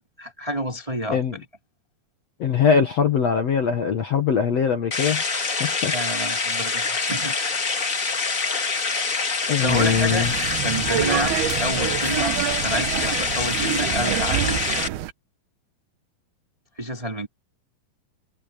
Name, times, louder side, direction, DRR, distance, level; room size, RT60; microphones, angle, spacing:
voice 1, 0.2-1.2 5.9-7.6 9.4-14.7 16.8-17.3, equal, 10° right, 2.1 m, -29 dB
voice 2, 2.4-5.2 5.6-5.9 9.5-10.3, left 7 dB, 55° left, 2.1 m, -21 dB
sound 1, 4.9-14.9, left 4 dB, 35° left, 1.5 m, -25 dB
sound 2, 9.7-15.1, right 13 dB, 75° right, 3.0 m, -27 dB
omnidirectional pair, 4.5 m